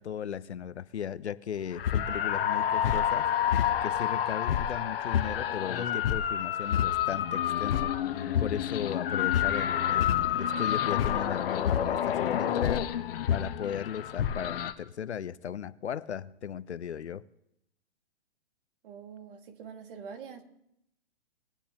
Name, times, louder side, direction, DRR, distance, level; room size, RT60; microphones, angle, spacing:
voice 1, 0.0-3.3 3.8-7.9 8.4-12.9 13.3-17.2, left 8 dB, 85° left, 0.7 m, -36 dB
sound 1, 1.8-14.7, left 10 dB, 60° left, 1.1 m, -28 dB
voice 2, 18.8-20.4, right 6 dB, 55° right, 1.9 m, -45 dB
21.0 x 8.5 x 3.0 m
hypercardioid pair, 135°, 33 cm